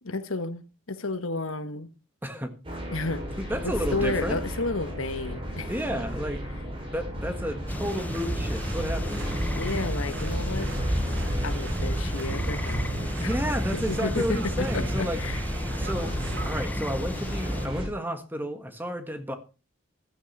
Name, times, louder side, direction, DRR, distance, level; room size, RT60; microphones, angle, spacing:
voice 1, 0.0-1.9 2.9-3.2 3.6-5.7 9.6-10.7 11.4-15.4, left 3 dB, 85° left, 1.4 m, -32 dB
sound 1, 2.6-17.9, equal, 25° right, 5.9 m, -34 dB
voice 2, 3.4-4.4 5.7-6.4 6.9-9.4 13.2-15.2 15.8-16.1 16.4-19.4, equal, 10° right, 1.5 m, -32 dB
sound 2, 7.7-17.7, left 1 dB, 10° left, 0.9 m, -32 dB
sound 3, 7.9-16.5, right 3 dB, 60° right, 0.6 m, -37 dB
15.0 x 13.0 x 4.2 m
head